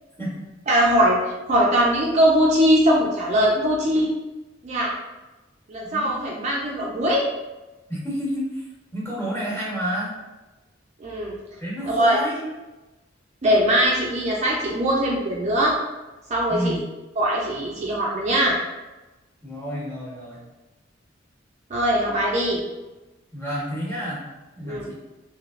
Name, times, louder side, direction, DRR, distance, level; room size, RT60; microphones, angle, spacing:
voice 1, 0.7-1.2 1.5-4.1 4.6-4.9 5.7-7.3 11.0-11.4 11.8-12.2 13.4-15.7 16.3-16.8 17.2-18.6 21.7-22.6 24.6-24.9, equal, 40° right, -3 dB, 0.4 m, -21 dB
voice 2, 5.8-6.3 7.9-8.6 8.9-10.2 11.6-12.5 16.5-16.8 19.4-20.4 23.3-24.3 24.5-25.0, equal, 15° left, -7 dB, 1.1 m, -30 dB
3.1 x 2.7 x 2.4 m, 1.1 s
head